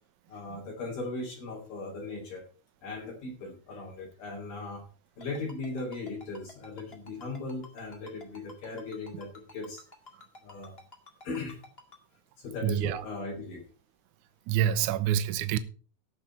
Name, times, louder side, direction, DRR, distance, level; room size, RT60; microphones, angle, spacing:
voice 1, 0.3-2.4 2.8-4.8 5.2-9.8 10.4-10.7 11.2-11.6 12.4-13.6, left 3 dB, 65° left, 4.2 m, -38 dB
Ringtone, 5.2-12.0, left 3 dB, 30° left, 1.0 m, -50 dB
voice 2, 12.6-13.1 14.5-15.6, right 10 dB, 80° right, 1.8 m, -27 dB
17.0 x 6.5 x 4.4 m
omnidirectional pair, 4.4 m